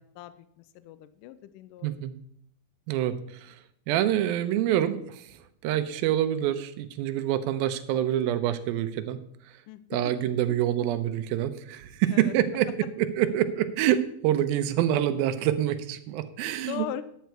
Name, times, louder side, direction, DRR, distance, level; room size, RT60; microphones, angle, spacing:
voice 1, 0.0-2.0 9.7-10.1 12.1-12.3 16.7-17.0, left 13 dB, 80° left, 13 dB, 1.9 m, -39 dB
voice 2, 1.8-2.1 2.9-3.6 3.9-9.2 9.9-16.9, right 11 dB, 85° right, 11 dB, 2.5 m, -26 dB
10.5 x 9.3 x 4.5 m, 0.69 s
omnidirectional pair, 4.3 m